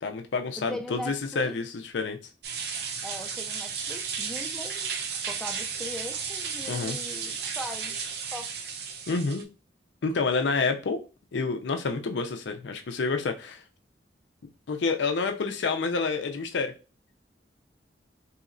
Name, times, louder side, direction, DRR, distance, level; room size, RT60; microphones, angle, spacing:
voice 1, 0.0-2.2 6.7-7.0 9.1-9.4 10.0-11.0 11.3-13.6 14.7-16.7, left 4 dB, 80° left, 0.5 m, -28 dB
voice 2, 0.7-1.5 3.0-5.0 5.3-8.0 8.3-8.6, left 1 dB, 5° left, 0.3 m, -40 dB
sound 1, 2.4-9.4, right 6 dB, 60° right, 0.6 m, -34 dB
4.0 x 2.8 x 2.5 m
head